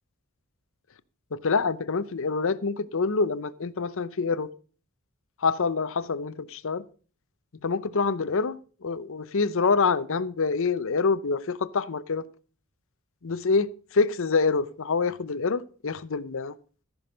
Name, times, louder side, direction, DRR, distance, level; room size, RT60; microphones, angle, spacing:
voice 1, 1.3-4.5 5.4-6.8 7.6-12.2 13.2-16.5, left 4 dB, 65° left, 0.7 m, -26 dB
14.5 x 6.2 x 5.2 m
head